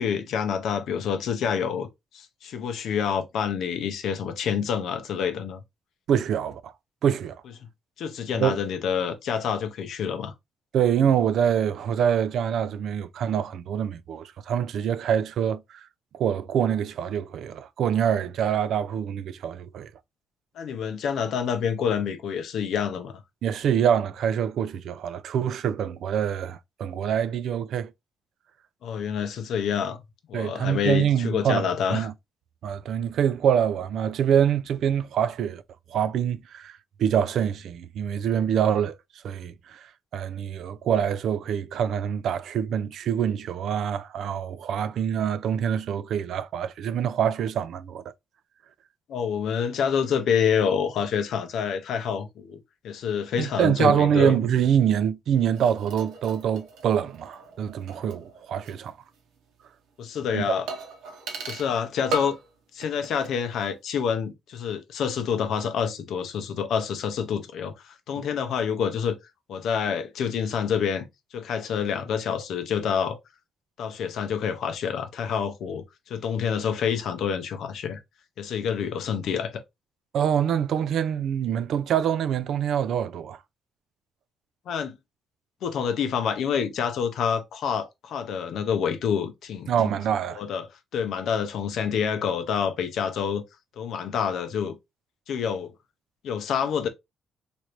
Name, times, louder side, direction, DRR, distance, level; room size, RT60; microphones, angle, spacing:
voice 1, 0.0-1.9 2.1-5.6 8.0-10.3 20.6-23.2 28.8-30.0 30.3-32.1 49.1-54.4 60.0-60.7 61.5-62.3 62.7-69.2 69.5-71.1 71.3-73.2 73.8-78.0 78.4-79.6 84.7-85.0 85.6-89.7 90.3-90.7 90.9-93.4 93.8-94.8 95.3-95.7 96.2-96.9, left 7 dB, 75° left, 0.6 m, -27 dB
voice 2, 6.1-6.7 7.0-7.4 8.4-8.6 10.7-15.9 16.1-19.9 23.4-27.9 30.3-32.1 32.6-35.6 35.9-39.0 39.2-48.0 53.4-59.0 60.3-60.4 80.1-83.4 89.7-90.4, right 8 dB, 70° right, 0.3 m, -25 dB
sound 1, 55.5-58.9 59.1-59.2 60.7-61.8 62.1-62.5 62.8-63.4 63.6-63.7, right 1 dB, 90° right, 0.8 m, -37 dB
3.1 x 2.5 x 2.9 m
cardioid pair, 90°, 0 cm